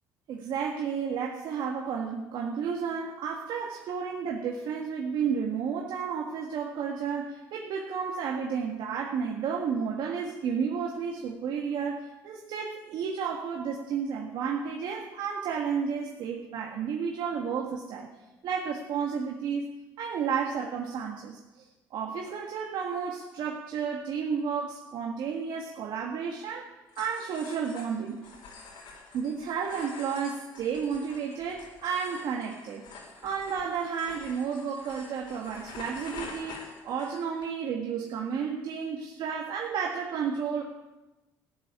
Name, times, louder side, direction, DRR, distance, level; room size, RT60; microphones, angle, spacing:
voice 1, 0.3-18.1 18.4-19.7 20.0-28.2 29.1-32.9 33.2-40.6, right 6 dB, 70° right, 0 dB, 1.8 m, -32 dB
sound 1, 26.9-37.5, left 4 dB, 75° left, 4.6 m, -47 dB
14.5 x 7.7 x 9.9 m, 1.1 s
supercardioid pair, 75°, 8 cm